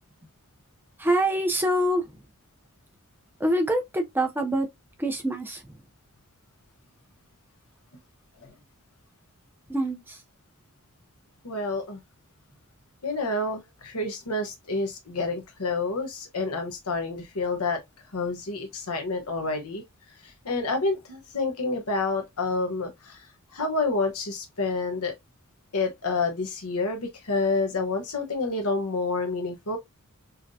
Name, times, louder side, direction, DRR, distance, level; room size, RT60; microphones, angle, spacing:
voice 1, 1.0-2.0 3.4-4.7 5.0-5.6 9.7-10.2, right 1 dB, 10° right, 0.6 m, -25 dB
voice 2, 11.4-12.0 13.0-17.8 18.1-19.8 20.2-25.1 25.7-29.8, left 3 dB, 75° left, 1.1 m, -29 dB
5.7 x 2.1 x 2.7 m
head